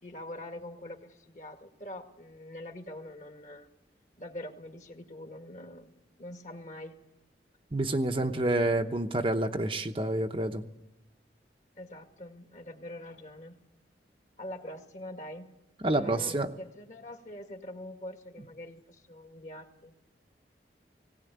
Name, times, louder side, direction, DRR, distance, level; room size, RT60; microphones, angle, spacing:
voice 1, 0.0-3.7 4.2-5.9 6.2-7.0 8.2-8.8 11.8-13.6 14.4-15.5 15.9-19.9, left 1 dB, 45° left, 5 dB, 2.1 m, -44 dB
voice 2, 7.7-10.6 15.8-16.5, right 1 dB, 30° right, 5 dB, 0.9 m, -28 dB
18.5 x 17.5 x 9.3 m, 0.92 s
head